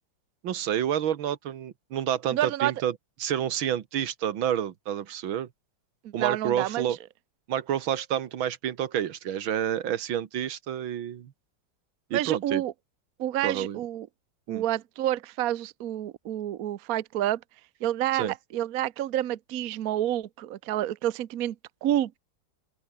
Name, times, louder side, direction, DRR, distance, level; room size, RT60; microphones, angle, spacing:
voice 1, 0.4-2.9 3.2-5.5 6.1-7.0 7.5-11.3 12.1-12.6 13.4-13.8 14.5-14.6 18.1-18.3, right 10 dB, 85° right, 2.0 m, -29 dB
voice 2, 2.3-2.7 6.2-6.8 12.1-12.7 13.2-14.1 14.5-17.4 17.8-18.2 18.5-21.5 21.8-22.2, right 13 dB, 55° right, 1.1 m, -28 dB
open air
omnidirectional pair, 2.1 m